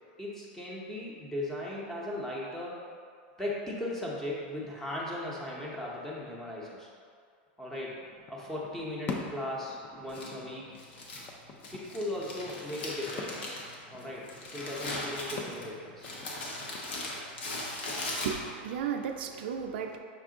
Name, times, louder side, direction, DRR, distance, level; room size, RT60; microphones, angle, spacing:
voice 1, 0.2-2.8 3.4-6.9 7.6-7.9 8.3-10.7 11.7-13.4 13.9-16.1, left 1 dB, 5° left, -5 dB, 0.8 m, -37 dB
sound 1, 7.9-17.0, left 4 dB, 25° left, 0.4 m, -45 dB
Crumpling crinkling, 10.1-18.7, left 2 dB, 85° left, 0.9 m, -39 dB
voice 2, 17.8-20.0, right 7 dB, 70° right, 5 dB, 0.3 m, -35 dB
5.8 x 2.4 x 3.7 m, 2.1 s
supercardioid pair, 145°, 6 cm